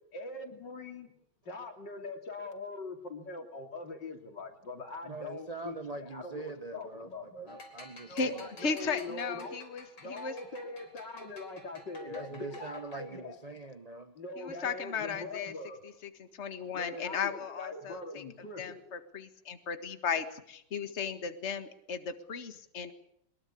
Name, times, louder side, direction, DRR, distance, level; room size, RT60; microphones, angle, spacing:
voice 1, 0.1-1.1 1.5-7.6 8.1-9.6 10.0-13.4 14.2-15.8 16.7-18.8, left 3 dB, 55° left, 3.6 m, -42 dB
voice 2, 5.0-8.9 12.1-14.2, right 3 dB, 30° right, 0.7 m, -43 dB
sound 1, 7.5-13.2, left 1 dB, 70° left, 5.0 m, -52 dB
voice 3, 8.6-10.3 14.4-15.5 16.4-18.0 18.6-22.9, left 5 dB, 35° left, 1.9 m, -35 dB
23.0 x 22.0 x 8.5 m
omnidirectional pair, 2.3 m